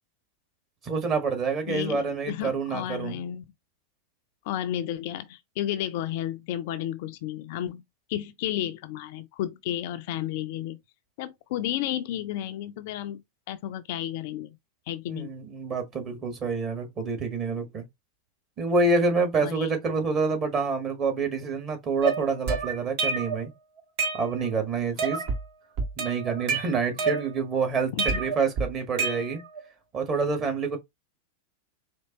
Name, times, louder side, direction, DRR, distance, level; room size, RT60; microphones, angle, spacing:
voice 1, 0.8-3.2 15.1-17.8 18.6-23.5 24.1-25.2 26.0-29.4 29.9-30.8, right 4 dB, 30° right, 1.5 m, -27 dB
voice 2, 1.7-3.4 4.5-7.8 8.1-10.8 11.2-14.6 14.9-15.3 19.4-19.7 27.0-27.1 27.9-28.2, left 12 dB, 50° left, 0.4 m, -32 dB
sound 1, 22.0-23.4 23.8-24.6 25.0-25.4 25.8-27.6 28.0-29.6, right 4 dB, 50° right, 1.3 m, -29 dB
4.4 x 2.8 x 2.9 m
figure-of-eight pair, 90°, 0 cm